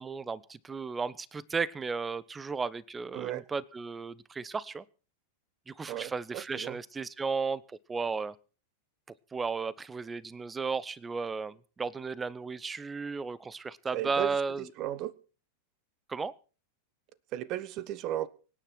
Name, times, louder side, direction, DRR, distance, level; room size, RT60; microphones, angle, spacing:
voice 1, 0.0-4.8 5.7-8.3 9.3-14.6 16.1-16.3, right 4 dB, 15° right, 0.7 m, -34 dB
voice 2, 3.1-3.4 5.9-6.8 13.9-15.1 17.3-18.3, right 12 dB, 40° right, 1.3 m, -35 dB
25.0 x 10.0 x 4.5 m
figure-of-eight pair, 90°, 0 cm